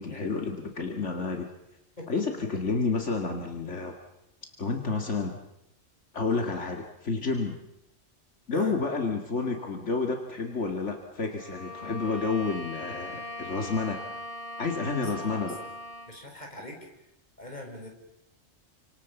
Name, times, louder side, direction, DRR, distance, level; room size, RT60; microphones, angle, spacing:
voice 1, 0.0-1.5 2.1-4.0 4.6-5.4 6.1-7.6 8.5-14.0 14.6-15.6, left 4 dB, 80° left, 3 dB, 2.5 m, -30 dB
Bowed string instrument, 11.3-16.2, left 1 dB, 50° right, 8.3 m, -40 dB
voice 2, 15.0-15.5 16.1-16.9 17.4-17.9, left 1 dB, 35° left, 1 dB, 6.1 m, -42 dB
28.5 x 27.0 x 7.2 m, 0.83 s
omnidirectional pair, 1.2 m